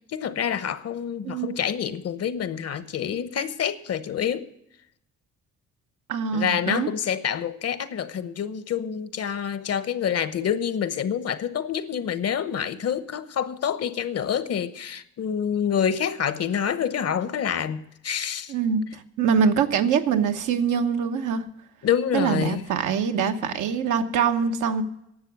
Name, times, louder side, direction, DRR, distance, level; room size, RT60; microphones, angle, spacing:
voice 1, 0.1-4.5 6.3-18.5 21.8-22.6, left 8 dB, 55° left, 14 dB, 0.9 m, -27 dB
voice 2, 1.2-1.6 6.1-6.9 18.5-21.4 22.1-24.8, right 6 dB, 80° right, 6 dB, 1.2 m, -24 dB
11.0 x 7.1 x 9.4 m, 0.79 s
cardioid pair, 90°, 30 cm